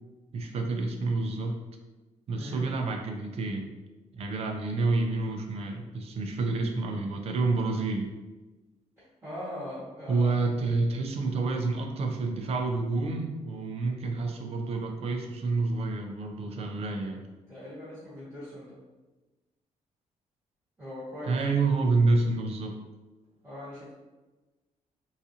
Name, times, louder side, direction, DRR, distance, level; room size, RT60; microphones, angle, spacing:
voice 1, 0.3-1.6 2.3-3.7 4.1-8.1 10.1-17.2 21.3-22.7, right 3 dB, 50° right, 3 dB, 0.5 m, -28 dB
voice 2, 2.3-2.7 9.0-10.3 17.5-18.8 20.8-21.4 23.4-23.9, left 1 dB, 15° right, -11 dB, 1.1 m, -40 dB
3.9 x 2.4 x 2.7 m, 1.2 s
wide cardioid pair, 160°, 13 cm